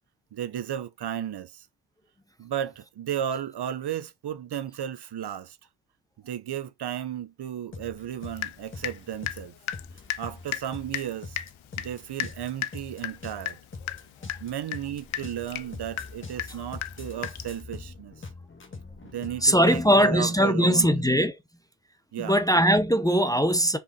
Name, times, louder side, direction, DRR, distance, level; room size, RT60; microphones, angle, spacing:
voice 1, 0.3-1.7 2.4-5.6 6.2-9.5 10.2-11.4 11.8-13.6 14.4-18.1 19.1-21.0 22.1-22.4, right 10 dB, 50° right, 0.8 m, -34 dB
sound 1, 7.7-20.0, left 3 dB, 25° left, 1.5 m, -43 dB
Water tap faucet / Drip, 8.4-9.0 9.3-17.6, left 12 dB, 70° left, 0.7 m, -35 dB
voice 2, 19.4-21.3 22.2-23.8, equal, 5° left, 0.7 m, -20 dB
5.2 x 5.0 x 4.2 m
cardioid pair, 120°, 49 cm